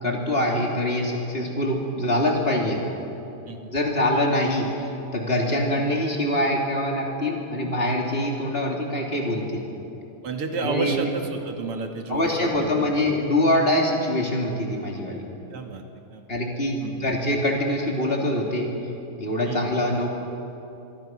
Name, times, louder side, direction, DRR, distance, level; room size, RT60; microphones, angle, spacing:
voice 1, 0.0-2.8 3.7-9.6 10.6-11.1 12.1-15.2 16.3-18.7 19.2-20.1, left 1 dB, 25° left, 0 dB, 3.4 m, -24 dB
voice 2, 10.2-13.0 15.5-15.8 16.1-16.3 16.8-17.1 19.4-19.7, right 4 dB, 85° right, 4 dB, 2.9 m, -31 dB
25.0 x 24.5 x 6.2 m, 2.9 s
omnidirectional pair, 2.4 m